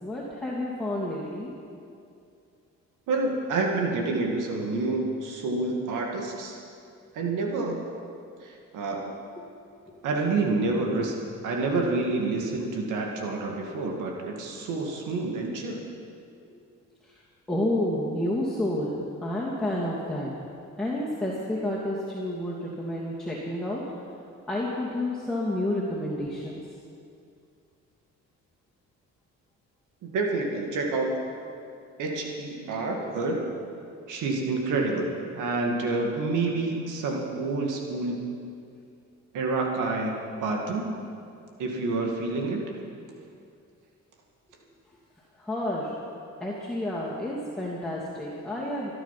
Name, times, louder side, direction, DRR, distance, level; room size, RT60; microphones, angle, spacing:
voice 1, 0.0-1.5 9.4-9.5 16.5-16.6 17.0-17.2 17.5-20.3 20.8-23.8 24.5-26.6 45.4-46.0 46.4-48.9, left 1 dB, ahead, -7 dB, 2.8 m, -30 dB
voice 2, 3.1-6.6 7.1-7.8 8.4-9.1 10.0-15.8 30.0-31.1 32.0-33.6 34.1-38.2 39.3-41.0 41.6-42.6, right 3 dB, 85° right, 1 dB, 2.2 m, -28 dB
24.0 x 9.2 x 5.9 m, 2.5 s
cardioid pair, 90°, 30 cm